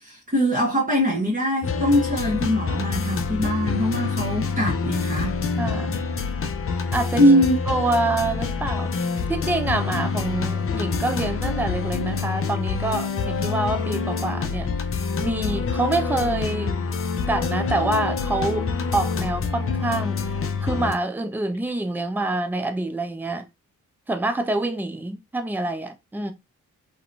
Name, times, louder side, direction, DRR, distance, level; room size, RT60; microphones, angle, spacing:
voice 1, 0.0-5.3 7.2-7.5, equal, 20° right, 1.0 m, -22 dB
sound 1, 1.6-20.9, left 5 dB, 35° left, 0.6 m, -26 dB
voice 2, 5.6-6.0 6.9-7.2 7.7-14.7 15.2-16.8 17.3-20.3 20.6-23.5 24.1-26.3, right 2 dB, 5° right, 0.6 m, -26 dB
2.8 x 2.2 x 2.5 m
hypercardioid pair, 40°, 38 cm